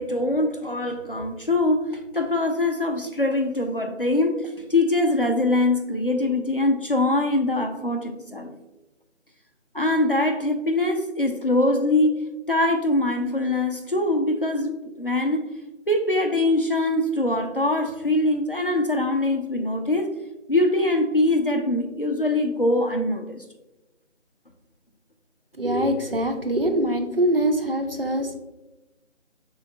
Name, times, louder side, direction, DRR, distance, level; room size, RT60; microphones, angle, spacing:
voice 1, 0.0-8.5 9.7-12.2 12.5-15.4 15.9-20.1 20.5-23.4, left 2 dB, 45° left, 4 dB, 0.4 m, -23 dB
voice 2, 25.5-28.4, right 1 dB, 50° right, 5 dB, 0.5 m, -23 dB
5.2 x 3.7 x 2.5 m, 1.0 s
figure-of-eight pair, 175°, 38 cm